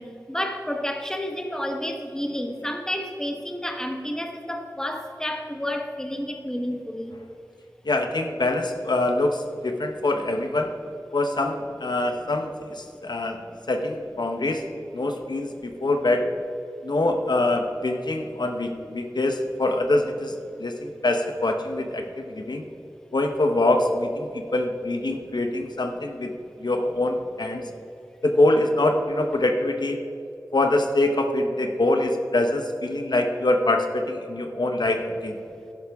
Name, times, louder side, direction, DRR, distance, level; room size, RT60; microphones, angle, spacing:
voice 1, 0.0-7.1 13.5-13.6, left 1 dB, 10° left, 4 dB, 1.2 m, -30 dB
voice 2, 7.8-10.8 11.1-13.4 13.7-14.7 14.9-16.3 16.8-20.3 20.6-22.6 23.1-26.3 26.6-27.7 28.2-30.0 30.5-35.4, left 2 dB, 80° left, 5 dB, 0.9 m, -24 dB
11.5 x 11.0 x 3.6 m, 2.7 s
wide cardioid pair, 45°, 7 cm